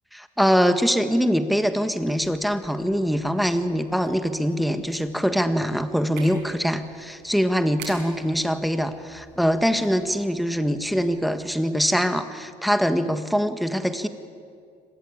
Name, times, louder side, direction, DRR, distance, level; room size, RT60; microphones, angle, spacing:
voice 1, 0.1-14.1, equal, ahead, 9 dB, 1.5 m, -23 dB
sound 1, 1.9-11.5, right 5 dB, 80° right, 7.8 m, -49 dB
25.0 x 18.5 x 8.7 m, 2.2 s
cardioid pair, 110°, 17 cm